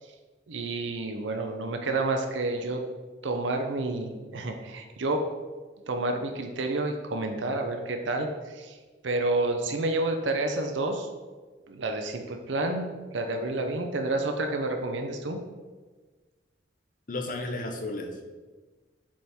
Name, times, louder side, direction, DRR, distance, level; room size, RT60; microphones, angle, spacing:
voice 1, 0.5-2.8 3.2-5.2 5.9-8.8 9.0-11.1 11.7-15.4, right 2 dB, 80° right, 4 dB, 0.7 m, -29 dB
voice 2, 17.1-18.2, left 2 dB, 45° left, 4 dB, 0.8 m, -33 dB
7.3 x 3.6 x 4.4 m, 1.3 s
head